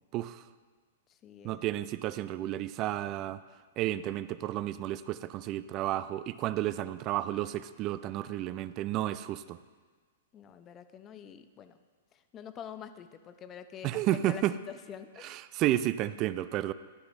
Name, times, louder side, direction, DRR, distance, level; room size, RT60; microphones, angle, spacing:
voice 1, 0.1-0.4 1.4-3.4 3.8-9.6 13.8-14.5 15.3-16.7, right 14 dB, 35° right, 15 dB, 0.4 m, -32 dB
voice 2, 1.1-1.6 10.3-11.8 12.1-15.4, left 8 dB, 25° left, 10 dB, 0.6 m, -46 dB
14.0 x 9.6 x 2.6 m, 1.5 s
hypercardioid pair, 115°, 0 cm